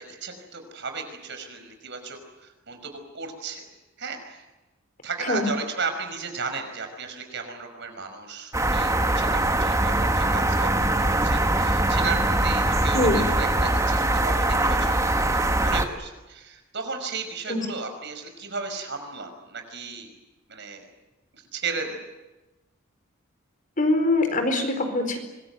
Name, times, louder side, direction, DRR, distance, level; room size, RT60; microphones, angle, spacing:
voice 1, 0.0-3.6 4.0-4.4 5.0-10.7 11.0-20.1 20.5-20.9 21.5-22.0, right 4 dB, 55° right, 6 dB, 5.6 m, -34 dB
sound 1, 8.5-15.9, right 1 dB, 15° right, 1.7 m, -22 dB
voice 2, 12.9-13.3 17.5-17.6 23.8-25.2, left 2 dB, 40° left, 6 dB, 4.5 m, -23 dB
25.5 x 22.0 x 9.3 m, 1.1 s
head